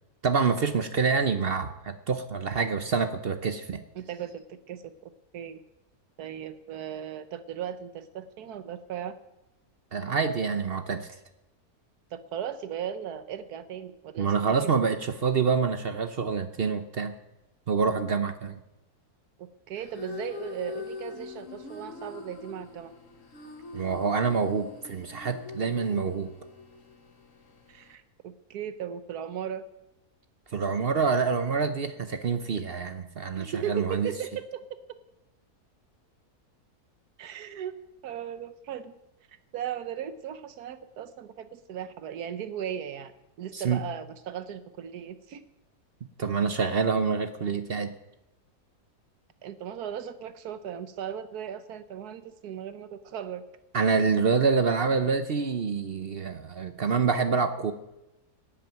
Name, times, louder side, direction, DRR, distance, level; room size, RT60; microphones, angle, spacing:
voice 1, 0.2-3.8 9.9-11.1 14.2-17.1 17.7-18.6 23.7-26.3 30.5-34.1 43.5-43.8 46.2-47.9 53.7-57.7, right 5 dB, 50° right, 9 dB, 0.8 m, -26 dB
voice 2, 4.0-5.6 6.2-9.1 12.1-14.3 14.6-14.7 19.4-22.9 27.7-29.6 33.4-34.6 37.2-37.8 38.0-38.9 39.5-43.1 43.4-45.4 49.4-53.4, right 9 dB, 75° right, 12 dB, 1.5 m, -37 dB
sound 1, 19.7-28.0, left 3 dB, 55° left, 1.8 m, -43 dB
13.0 x 8.8 x 9.0 m, 0.94 s
omnidirectional pair, 1.6 m